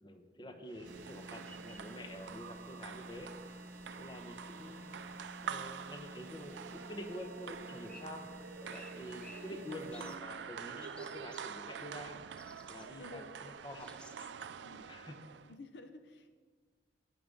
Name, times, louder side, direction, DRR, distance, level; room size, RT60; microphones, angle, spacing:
voice 1, 0.0-3.6 3.9-4.9 5.4-8.3 8.5-12.2 12.7-13.9 14.3-14.5 14.9-15.2, left 1 dB, 25° left, 6 dB, 0.9 m, -48 dB
sound 1, 0.7-15.6, right 7 dB, 75° right, 0.4 m, -47 dB
sound 2, 0.8-10.2, equal, 50° right, 0.8 m, -51 dB
sound 3, 1.4-14.3, left 1 dB, 5° left, 0.6 m, -61 dB
voice 2, 9.2-9.7 12.9-13.3 14.6-14.9 15.4-16.3, left 2 dB, 75° left, 9 dB, 0.6 m, -53 dB
10.0 x 9.6 x 3.8 m, 1.4 s
head